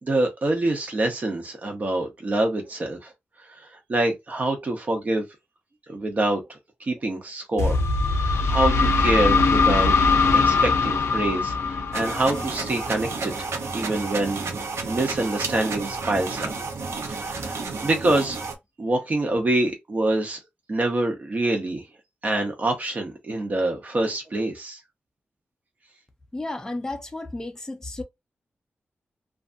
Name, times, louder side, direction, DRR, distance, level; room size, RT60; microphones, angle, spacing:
voice 1, 0.0-3.1 3.6-5.2 5.9-7.8 8.1-9.9 10.4-14.4 14.8-16.5 17.1-18.4 18.8-20.4 20.7-21.8 22.2-24.8, right 2 dB, 35° right, 0.7 m, -26 dB
sound 1, 7.6-13.2, left 4 dB, 85° left, 0.5 m, -21 dB
sound 2, 11.9-18.5, right 4 dB, 90° right, 0.6 m, -31 dB
voice 2, 26.3-28.0, left 2 dB, 15° left, 0.4 m, -33 dB
2.6 x 2.3 x 2.5 m
wide cardioid pair, 170°, 4 cm